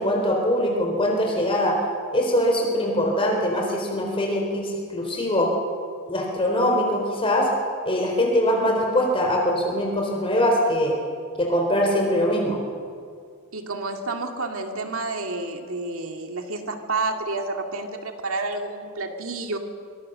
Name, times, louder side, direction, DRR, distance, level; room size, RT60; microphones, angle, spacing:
voice 1, 0.0-1.8 2.1-5.5 6.1-7.5 7.8-11.0 11.4-12.6, equal, 25° left, 0 dB, 3.9 m, -22 dB
voice 2, 13.5-19.6, right 3 dB, 70° right, 3 dB, 2.3 m, -30 dB
26.0 x 24.5 x 6.7 m, 2.2 s
head